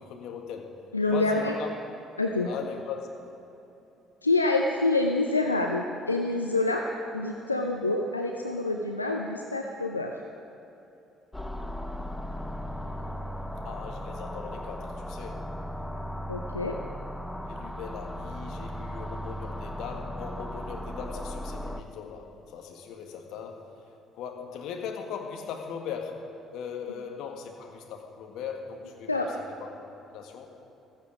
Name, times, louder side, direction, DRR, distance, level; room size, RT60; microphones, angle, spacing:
voice 1, 0.0-0.8 1.1-1.7 2.5-3.1 13.6-15.5 17.5-23.7 24.1-29.8 30.1-30.5, left 7 dB, 60° left, 3 dB, 1.7 m, -39 dB
voice 2, 0.9-1.5 2.2-2.5 4.2-6.8 7.1-10.1 16.3-16.8 29.1-29.3, left 2 dB, 90° left, 2 dB, 0.6 m, -27 dB
sound 1, 11.3-21.8, equal, 5° left, 0.9 m, -37 dB
15.5 x 14.5 x 5.2 m, 3.0 s
figure-of-eight pair, 50°, 0 cm